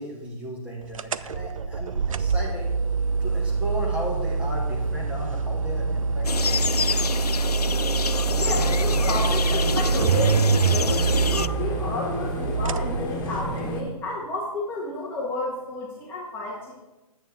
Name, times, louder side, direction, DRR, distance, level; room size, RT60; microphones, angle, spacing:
voice 1, 0.0-2.7 3.2-7.0, equal, 5° right, -2 dB, 2.1 m, -35 dB
sound 1, 0.9-13.8, right 5 dB, 60° right, 0.6 m, -25 dB
sound 2, 6.2-11.5, left 5 dB, 85° left, 0.4 m, -28 dB
sound 3, 8.3-13.8, left 2 dB, 35° left, 1.9 m, -33 dB
voice 2, 8.4-16.7, left 2 dB, 10° left, -5 dB, 1.7 m, -32 dB
10.5 x 8.7 x 4.6 m, 1.1 s
figure-of-eight pair, 135°, 20 cm